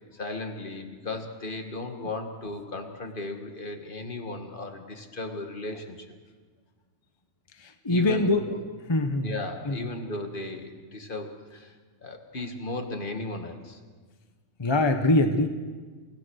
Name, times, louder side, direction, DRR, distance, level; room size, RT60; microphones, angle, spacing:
voice 1, 0.1-6.1 7.9-8.6 9.2-11.7 12.0-13.8, left 2 dB, 40° left, 5 dB, 2.1 m, -36 dB
voice 2, 7.5-8.6 8.9-9.3 9.6-9.9 14.6-15.5, left 2 dB, 25° left, 7 dB, 1.0 m, -23 dB
28.5 x 17.0 x 6.5 m, 1.4 s
omnidirectional pair, 1.3 m